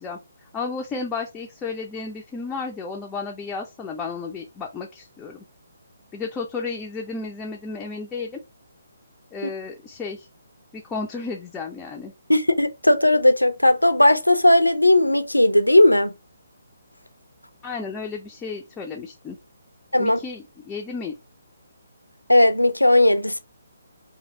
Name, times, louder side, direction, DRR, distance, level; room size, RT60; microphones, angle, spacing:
voice 1, 0.0-5.4 6.1-8.4 9.3-10.3 10.7-12.1 17.6-19.4 20.0-21.1, left 4 dB, 10° left, 0.4 m, -33 dB
voice 2, 12.3-16.1 19.9-20.2 22.3-23.4, left 1 dB, 85° left, 0.4 m, -17 dB
3.1 x 2.4 x 2.7 m
figure-of-eight pair, 140°, 0 cm